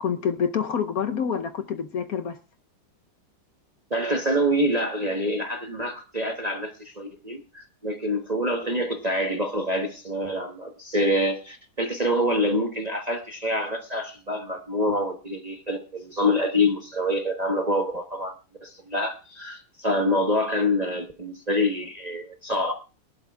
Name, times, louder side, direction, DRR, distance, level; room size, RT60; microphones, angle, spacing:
voice 1, 0.0-2.4, left 7 dB, 60° left, 1.1 m, -27 dB
voice 2, 3.9-18.3 18.6-22.7, left 1 dB, 25° right, 0.9 m, -26 dB
22.5 x 11.5 x 2.3 m
omnidirectional pair, 2.0 m